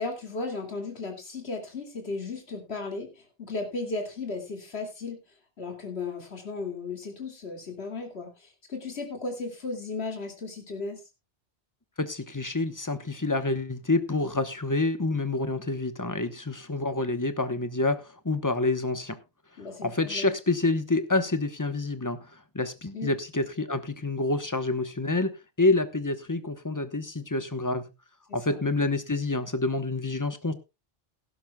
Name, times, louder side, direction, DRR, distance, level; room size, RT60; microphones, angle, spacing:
voice 1, 0.0-5.2 5.6-11.0 19.6-20.3 22.9-23.1 28.3-28.6, left 3 dB, 60° left, 2.8 m, -35 dB
voice 2, 12.0-19.2 19.8-25.3 25.6-27.9 28.3-30.5, left 2 dB, 15° left, 1.0 m, -28 dB
18.0 x 11.0 x 2.3 m
omnidirectional pair, 1.2 m